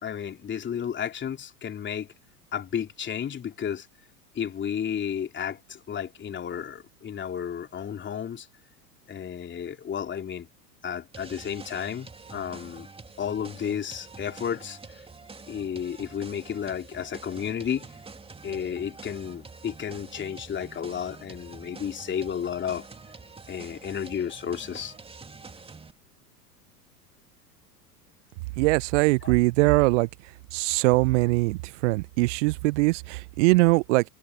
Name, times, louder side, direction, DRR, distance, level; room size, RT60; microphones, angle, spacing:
voice 1, 0.0-2.1 2.5-3.9 4.3-8.5 9.1-10.5 10.8-12.9 13.2-14.8 15.5-17.9 18.4-22.9 23.5-24.9 29.2-29.3, left 8 dB, 25° left, 3.3 m, -32 dB
sound 1, 11.1-25.9, right 4 dB, 10° right, 2.5 m, -46 dB
voice 2, 28.6-30.1 30.5-34.0, right 23 dB, 50° right, 0.9 m, -22 dB
figure-of-eight pair, 85°, 47 cm